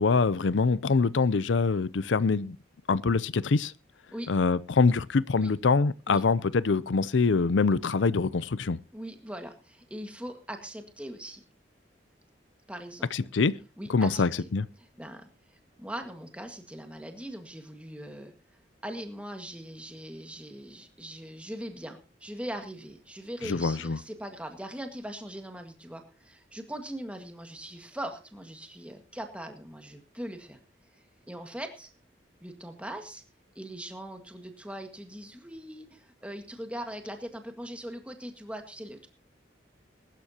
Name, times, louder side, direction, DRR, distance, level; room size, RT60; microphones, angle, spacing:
voice 1, 0.0-2.6 2.9-3.7 4.3-8.8 13.1-13.6 13.9-14.6 23.4-24.0, left 4 dB, 85° left, 0.6 m, -24 dB
voice 2, 8.9-11.4 12.7-13.3 13.8-14.5 14.8-18.3 18.8-30.6 30.9-31.9 32.4-33.2 33.5-39.1, right 1 dB, 5° right, 1.7 m, -41 dB
22.0 x 12.0 x 2.9 m
head